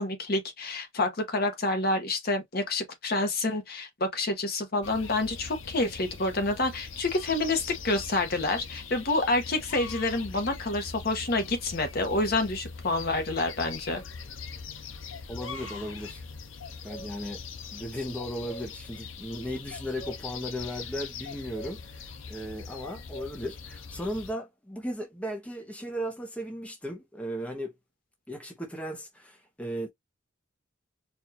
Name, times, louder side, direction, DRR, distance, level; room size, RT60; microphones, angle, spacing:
voice 1, 0.0-14.0, left 2 dB, 50° left, 1.2 m, -28 dB
sound 1, 4.8-24.3, left 5 dB, 75° left, 0.7 m, -41 dB
voice 2, 15.3-16.2 16.8-17.4 17.7-27.7 28.3-29.9, equal, 5° left, 0.9 m, -36 dB
4.4 x 2.6 x 2.8 m
head